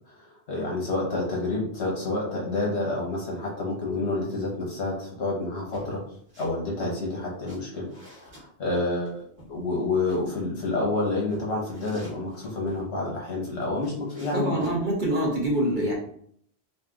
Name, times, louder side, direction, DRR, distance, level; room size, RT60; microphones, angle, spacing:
voice 1, 0.1-6.0 6.4-14.7, left 2 dB, 85° left, -3 dB, 1.3 m, -29 dB
sound 1, 5.7-6.6 6.9-8.5 9.1-10.3 10.9-12.9 13.4-14.8, right 1 dB, 65° right, 1.7 m, -46 dB
voice 2, 14.3-15.9, right 1 dB, 50° right, -2 dB, 1.3 m, -25 dB
4.2 x 2.3 x 3.5 m, 0.63 s
omnidirectional pair, 1.1 m